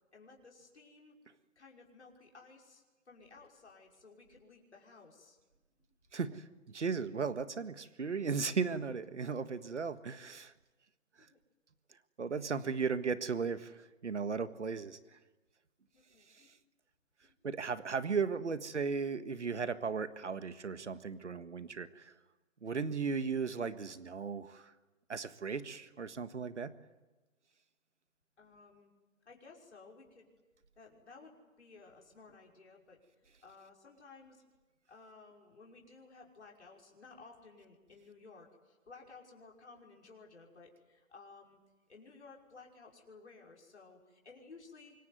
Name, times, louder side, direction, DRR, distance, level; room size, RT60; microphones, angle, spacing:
voice 1, 0.1-1.1 1.6-5.4 11.2-11.4 12.3-12.8 15.9-16.5 17.2-17.4 18.0-18.5 28.4-28.9 29.3-30.3 30.8-34.4 34.9-41.6 41.9-44.9, left 4 dB, 55° left, 0 dB, 5.9 m, -57 dB
voice 2, 6.1-10.5 12.2-15.0 17.4-22.1 22.6-24.7 25.1-26.7, right 5 dB, 60° right, 12 dB, 1.7 m, -36 dB
26.0 x 23.0 x 9.5 m, 1.1 s
hypercardioid pair, 180°, 40 cm